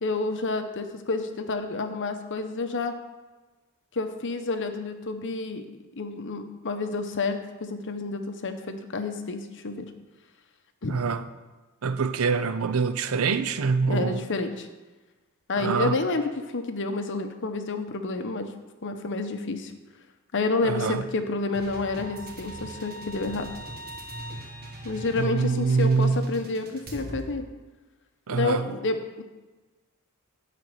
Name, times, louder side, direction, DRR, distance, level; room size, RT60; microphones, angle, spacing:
voice 1, 0.0-2.9 3.9-5.7 6.0-9.9 10.8-11.0 13.9-14.7 15.5-18.5 18.8-19.7 20.3-23.5 24.8-27.4 28.3-29.2, left 3 dB, 55° left, 0.9 m, -29 dB
voice 2, 10.9-11.2 11.8-14.2 15.6-16.0 20.6-21.0 25.1-26.3 28.3-28.7, right 5 dB, 70° right, 0.6 m, -25 dB
sound 1, 21.5-27.2, right 1 dB, 45° right, 1.6 m, -40 dB
11.0 x 4.2 x 7.9 m
head